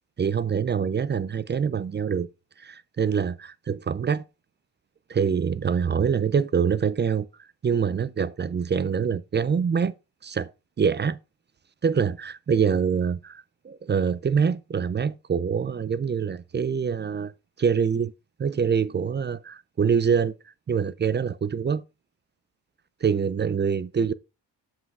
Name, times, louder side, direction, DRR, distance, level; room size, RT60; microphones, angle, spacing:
voice 1, 0.2-2.3 2.6-4.2 5.1-7.3 7.6-9.9 10.2-10.5 10.8-11.2 11.8-17.3 17.6-18.1 18.4-20.3 20.7-21.8 23.0-24.1, right 6 dB, 25° right, 0.4 m, -25 dB
7.4 x 6.0 x 4.8 m
wide cardioid pair, 165°, 42 cm